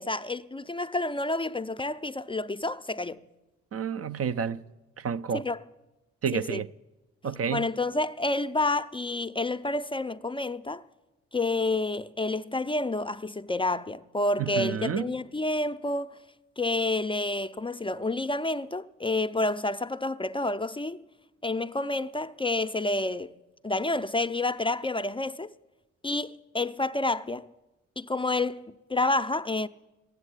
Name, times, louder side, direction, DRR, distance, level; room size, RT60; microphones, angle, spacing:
voice 1, 0.0-3.2 5.3-5.6 6.3-6.6 7.5-10.8 11.3-16.2 16.6-21.0 21.4-23.3 23.6-25.5 26.0-27.5 28.0-29.7, left 2 dB, 15° left, 0.5 m, -29 dB
voice 2, 3.7-4.6 5.0-5.4 6.2-6.7 7.2-7.7 14.4-15.0, right 7 dB, 50° right, 0.6 m, -29 dB
13.5 x 8.1 x 9.9 m
supercardioid pair, 50°, 30 cm